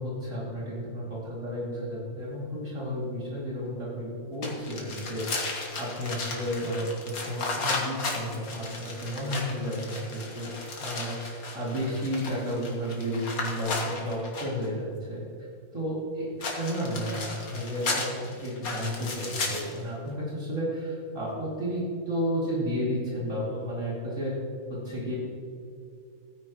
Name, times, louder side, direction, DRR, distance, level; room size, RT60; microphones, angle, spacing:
voice 1, 0.0-10.5 10.8-15.2 15.7-16.3 16.6-24.3 24.7-25.2, equal, 60° right, -7 dB, 3.2 m, -32 dB
sound 1, 4.4-14.7 16.4-19.8, left 3 dB, 85° left, 2.0 m, -35 dB
15.5 x 9.6 x 3.1 m, 2.3 s
omnidirectional pair, 1.5 m